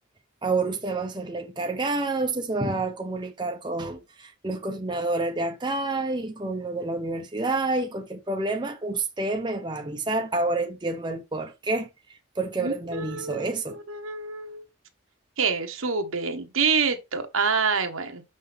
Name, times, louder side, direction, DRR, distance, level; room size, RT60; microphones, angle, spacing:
voice 1, 0.4-11.9 12.4-13.8, right 2 dB, 20° right, 0.8 m, -28 dB
voice 2, 12.6-14.6 15.4-18.2, right 5 dB, 80° right, 1.2 m, -27 dB
6.2 x 5.6 x 3.4 m
head